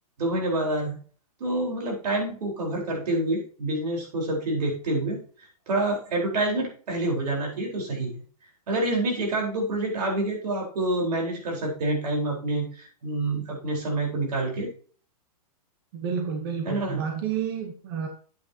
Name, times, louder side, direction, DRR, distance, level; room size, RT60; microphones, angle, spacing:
voice 1, 0.2-1.0 1.4-8.2 8.7-14.7 16.6-17.0, right 2 dB, 80° right, -1 dB, 4.4 m, -27 dB
voice 2, 15.9-18.1, right 7 dB, 35° right, 4 dB, 1.1 m, -30 dB
8.8 x 8.7 x 2.9 m, 0.42 s
hypercardioid pair, 170°, 20 cm